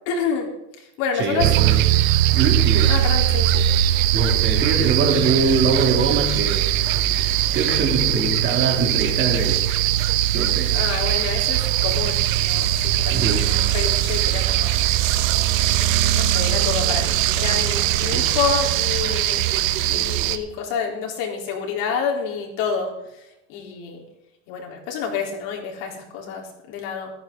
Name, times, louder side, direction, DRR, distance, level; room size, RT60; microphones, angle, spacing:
voice 1, 0.1-0.5 0.8-1.5 2.9-3.7 10.4-14.8 16.2-19.4 19.8-24.0 24.5-27.1, left 6 dB, 60° left, 0 dB, 4.0 m, -28 dB
voice 2, 1.1-1.9 2.3-2.9 4.1-9.6 10.0-10.8 13.1-13.4 18.1-18.3, right 4 dB, 30° right, 1 dB, 3.1 m, -23 dB
sound 1, 1.4-20.4, right 13 dB, 85° right, 1.2 m, -20 dB
15.0 x 13.5 x 3.9 m, 0.89 s
supercardioid pair, 155°, 39 cm